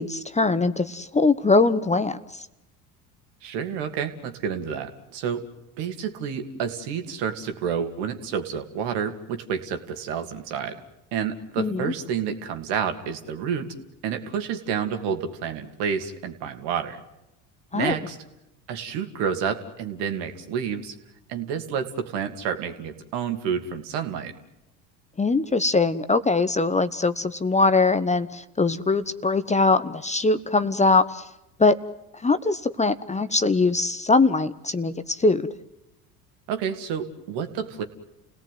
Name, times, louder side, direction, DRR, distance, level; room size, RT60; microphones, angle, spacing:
voice 1, 0.0-2.5 11.6-11.9 17.7-17.9 25.2-31.3 31.6-31.8 32.2-35.5, left 3 dB, 15° left, 12 dB, 1.0 m, -22 dB
voice 2, 3.4-5.4 5.8-10.8 11.1-13.7 14.0-17.0 17.7-18.2 18.7-20.9 21.3-24.3 36.5-37.8, right 7 dB, 65° right, 6 dB, 2.8 m, -29 dB
30.0 x 18.0 x 9.5 m, 0.93 s
hypercardioid pair, 75°, 44 cm